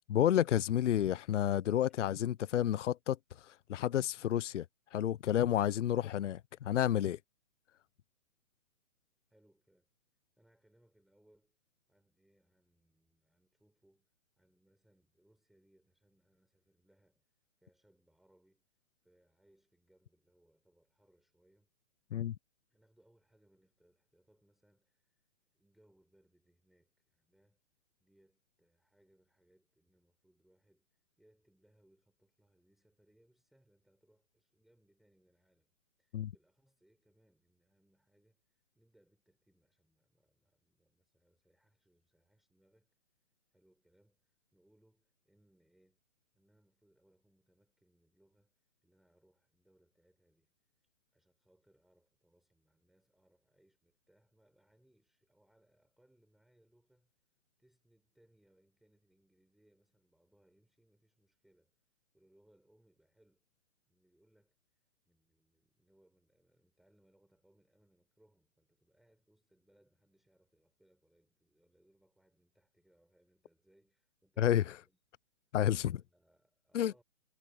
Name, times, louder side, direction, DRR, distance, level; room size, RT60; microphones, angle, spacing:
voice 1, 0.1-4.7 4.9-7.2 22.1-22.4 36.1-36.3 74.4-74.8 75.5-76.0 76.7-76.9, left 11 dB, 70° left, 0.5 m, -30 dB
voice 2, 9.3-9.9 10.4-11.6 11.9-21.7 22.7-27.6 28.0-46.0 46.3-57.3 57.6-61.8 62.1-63.5 63.8-75.0 75.5-75.6 75.8-77.0, right 1 dB, ahead, 4.7 m, -72 dB
hypercardioid pair, 180°, 38 cm